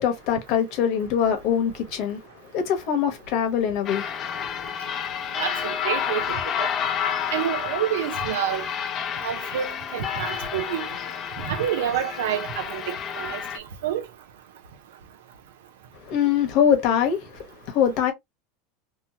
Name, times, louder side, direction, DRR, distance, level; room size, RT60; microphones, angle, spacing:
voice 1, 0.0-2.2 2.5-4.0 4.4-4.5 16.0-18.1, left 8 dB, 55° left, 1.0 m, -23 dB
sound 1, 3.9-13.6, left 8 dB, 35° left, 0.4 m, -30 dB
voice 2, 5.4-6.7 7.3-8.6 9.2-10.9 11.4-14.0, right 10 dB, 90° right, 0.6 m, -28 dB
2.9 x 2.1 x 2.8 m
supercardioid pair, 135°, 0 cm